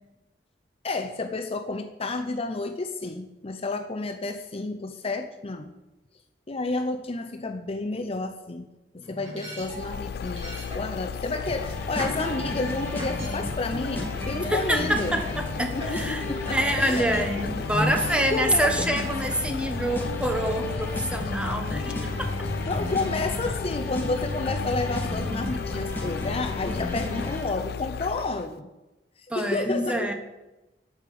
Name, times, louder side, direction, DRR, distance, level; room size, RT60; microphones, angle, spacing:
voice 1, 0.8-5.7 6.5-8.7 8.9-15.1 15.6-17.1 17.6-18.8 22.1-22.2 22.6-28.7 29.4-30.1, left 3 dB, 35° left, 6 dB, 0.7 m, -31 dB
sound 1, 8.9-14.6 15.0-20.5, equal, 35° right, 3.0 m, -39 dB
sound 2, 9.6-28.5, left 7 dB, 60° left, 0.3 m, -35 dB
sound 3, 11.4-27.4, left 1 dB, 10° left, 2.4 m, -33 dB
voice 2, 14.5-16.2 16.5-22.3 29.3-30.1, right 1 dB, 5° right, 4 dB, 1.2 m, -26 dB
8.8 x 6.6 x 8.5 m, 1.0 s
head